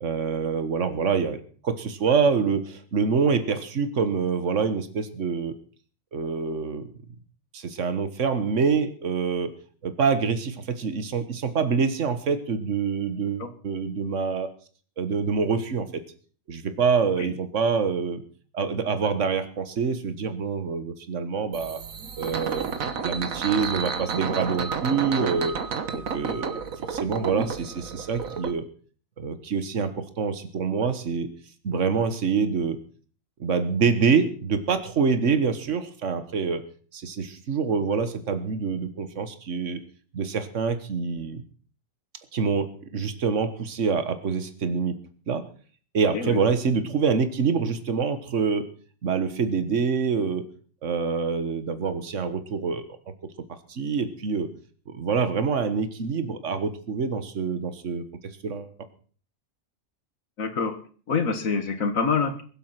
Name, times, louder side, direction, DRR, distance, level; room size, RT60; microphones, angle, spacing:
voice 1, 0.0-5.6 6.1-6.9 7.5-9.5 9.8-14.5 15.0-16.0 16.5-18.2 18.5-21.8 22.2-22.7 23.0-25.6 25.9-26.6 26.9-28.7 29.2-31.3 31.6-32.8 33.4-36.6 36.9-39.8 40.1-41.4 42.3-44.9 45.3-45.5 45.9-48.7 49.0-50.5 50.8-52.8 53.7-54.5 54.9-58.0 58.4-58.7, right 5 dB, 65° right, 11 dB, 1.7 m, -26 dB
sound 1, 21.5-28.5, right 6 dB, 80° right, 1.6 m, -31 dB
voice 2, 60.4-60.8 61.1-62.4, left 5 dB, 75° left, 9 dB, 2.1 m, -26 dB
21.5 x 7.9 x 5.9 m, 0.43 s
omnidirectional pair, 1.4 m